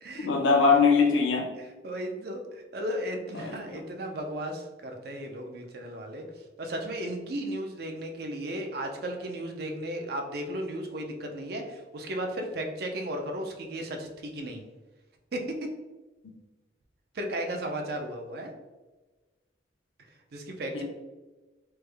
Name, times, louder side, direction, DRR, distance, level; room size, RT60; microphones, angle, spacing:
voice 1, 0.2-1.5 3.3-3.8 20.7-20.8, left 4 dB, 85° left, 3 dB, 0.6 m, -22 dB
voice 2, 1.6-14.6 15.3-15.6 17.1-18.5 20.3-20.8, right 1 dB, 55° right, 3 dB, 0.5 m, -35 dB
3.3 x 2.1 x 3.3 m, 1.2 s
head